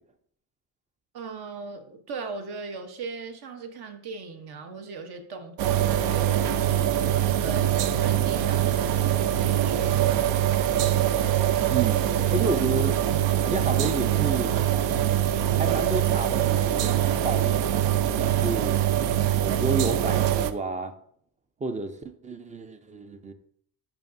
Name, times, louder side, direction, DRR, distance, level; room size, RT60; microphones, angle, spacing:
voice 1, 1.1-10.7, right 4 dB, 60° right, 7 dB, 1.0 m, -39 dB
sound 1, 5.6-20.5, right 11 dB, 85° right, 0.6 m, -23 dB
voice 2, 11.7-13.1 13.4-14.6 15.6-18.8 19.4-20.9 21.6-23.3, right 3 dB, 20° right, 10 dB, 0.3 m, -31 dB
11.0 x 4.8 x 2.6 m, 0.63 s
cardioid pair, 165°, 42 cm